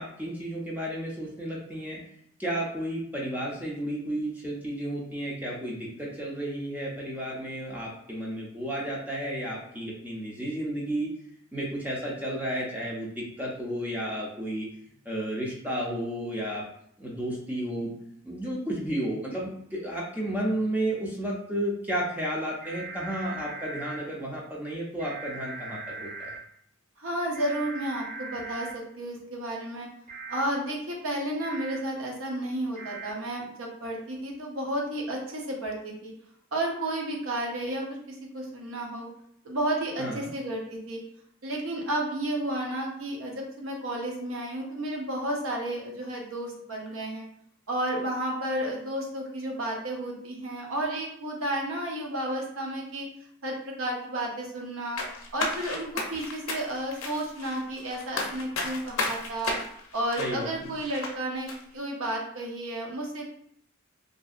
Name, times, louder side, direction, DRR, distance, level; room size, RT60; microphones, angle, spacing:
voice 1, 0.0-2.0 2.4-11.1 11.5-14.7 15.1-16.6 17.0-17.9 18.2-26.3 40.0-40.3 60.2-60.7, right 1 dB, 10° right, -4 dB, 0.5 m, -32 dB
sound 1, 22.6-24.0 25.0-26.4 27.3-28.7 30.1-30.4 31.4-31.8 32.7-33.1, right 3 dB, 40° right, 1.1 m, -39 dB
voice 2, 27.0-29.9 30.3-36.1 36.5-39.1 39.4-41.0 41.4-47.3 47.7-53.1 53.4-55.0 55.3-59.6 59.9-63.3, right 1 dB, 75° right, 0 dB, 0.7 m, -32 dB
sound 2, 55.0-61.1 61.5-61.6, left 3 dB, 80° left, 0.5 m, -33 dB
2.7 x 2.6 x 2.4 m, 0.68 s
head